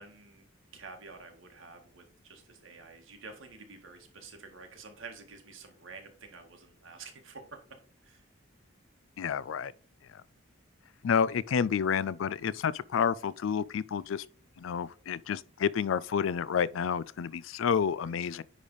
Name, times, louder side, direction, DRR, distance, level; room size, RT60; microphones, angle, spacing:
voice 1, 0.0-7.6 8.0-8.2, right 4 dB, 80° right, 1.7 m, -49 dB
voice 2, 9.2-9.7 10.1-10.2 11.0-14.2 14.6-18.4, left 7 dB, 75° left, 0.4 m, -29 dB
9.9 x 3.4 x 4.0 m
head